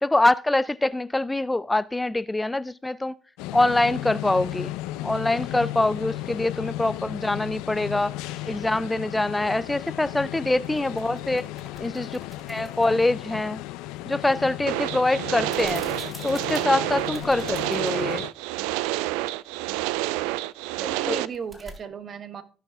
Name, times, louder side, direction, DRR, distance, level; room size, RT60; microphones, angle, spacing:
voice 1, 0.0-3.1 3.5-4.7 5.0-8.1 8.5-11.5 11.8-12.2 12.5-13.6 14.1-15.8 16.2-18.2 21.1-21.2, left 2 dB, 15° left, 0.3 m, -24 dB
sound 1, 3.4-18.3, left 16 dB, 75° left, 0.5 m, -35 dB
sound 2, 10.6-13.1 15.4-18.2 18.5-18.6 21.1-21.8, right 1 dB, 15° right, 3.1 m, -47 dB
sound 3, 14.7-21.3, right 17 dB, 80° right, 0.3 m, -29 dB
voice 2, 20.8-22.4, right 6 dB, 50° right, 1.2 m, -36 dB
16.0 x 5.6 x 3.5 m
hypercardioid pair, 65°, 0 cm